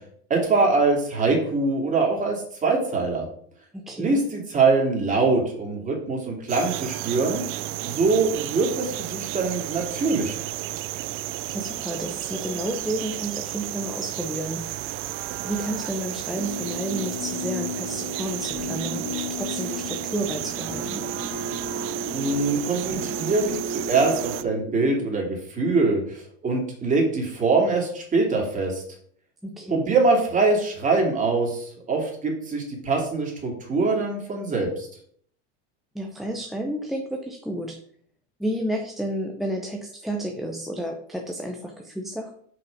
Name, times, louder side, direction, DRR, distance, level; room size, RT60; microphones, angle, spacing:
voice 1, 0.3-3.3 4.0-7.4 7.8-10.4 22.1-28.8 29.7-34.9, right 3 dB, 20° right, 0 dB, 2.5 m, -23 dB
voice 2, 3.7-4.2 11.5-14.8 15.4-21.1 29.4-29.9 35.9-37.8 38.4-42.3, right 1 dB, ahead, 2 dB, 0.7 m, -31 dB
sound 1, 6.5-24.4, right 15 dB, 40° right, 0.4 m, -33 dB
sound 2, 16.3-25.0, left 1 dB, 25° left, 2.3 m, -34 dB
5.6 x 5.5 x 5.2 m, 0.62 s
supercardioid pair, 130°, 35 cm